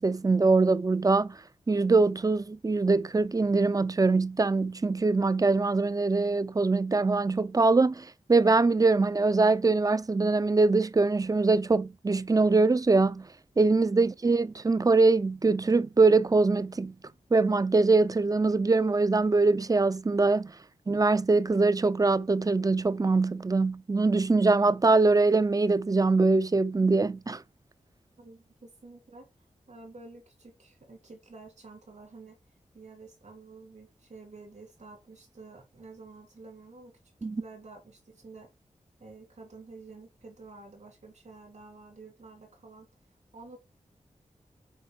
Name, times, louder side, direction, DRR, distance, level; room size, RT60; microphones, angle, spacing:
voice 1, 0.0-1.4 1.7-13.3 13.6-16.9 17.3-20.5 20.9-27.4 37.2-37.4, right 3 dB, 25° right, 0.5 m, -23 dB
voice 2, 28.2-29.3 29.7-32.4 32.7-36.9 37.2-38.5 39.0-42.9 43.3-43.6, right 3 dB, 60° right, 3.0 m, -49 dB
8.1 x 4.2 x 5.2 m
wide cardioid pair, 70°, 13 cm